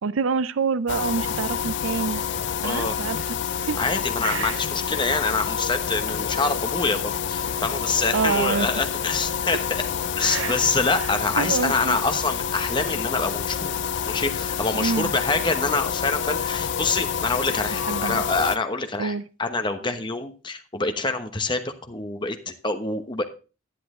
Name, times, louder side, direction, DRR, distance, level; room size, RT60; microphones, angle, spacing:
voice 1, 0.0-2.2 2.6-3.4 3.6-3.8 4.2-4.6 8.1-8.8 10.2-10.7 11.0-11.1 11.4-12.0 14.7-15.1 17.9-18.2 19.0-19.2, right 5 dB, 80° right, 17 dB, 0.5 m, -27 dB
sound 1, 0.9-18.6, left 8 dB, 60° left, 0.5 m, -28 dB
voice 2, 2.6-2.9 3.8-9.9 10.2-13.7 14.1-23.2, left 3 dB, 25° left, 7 dB, 1.0 m, -26 dB
10.0 x 10.0 x 3.7 m, 0.33 s
head